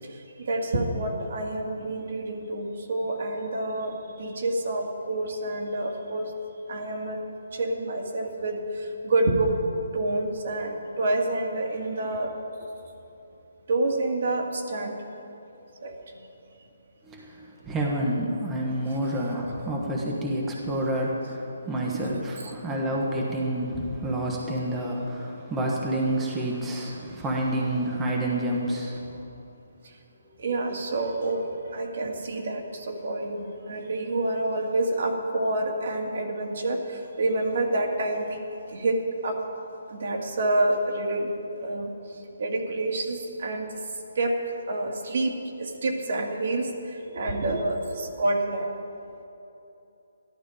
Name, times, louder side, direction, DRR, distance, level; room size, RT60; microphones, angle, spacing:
voice 1, 0.4-6.3 6.7-7.2 7.5-9.5 9.9-12.3 13.7-14.9 15.8-15.9 21.9-22.0 22.4-22.5 30.4-38.4 38.7-39.4 39.9-41.9 42.4-43.7 44.2-44.3 44.7-46.7 47.1-48.7, right 2 dB, 55° right, 1 dB, 2.0 m, -28 dB
voice 2, 17.1-29.0, right 1 dB, 10° right, -3 dB, 1.2 m, -28 dB
14.0 x 12.0 x 5.0 m, 2.9 s
hypercardioid pair, 165°, 0 cm